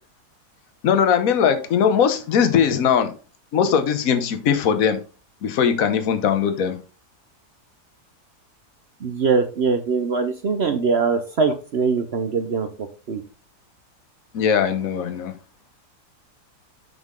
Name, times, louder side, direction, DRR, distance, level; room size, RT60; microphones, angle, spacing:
voice 1, 0.8-3.1 3.5-5.0 5.4-6.8 14.3-15.3, left 7 dB, 60° left, 1.3 m, -20 dB
voice 2, 9.0-12.7 13.1-13.2, right 5 dB, 55° right, 0.8 m, -22 dB
7.3 x 5.8 x 3.7 m
omnidirectional pair, 1.7 m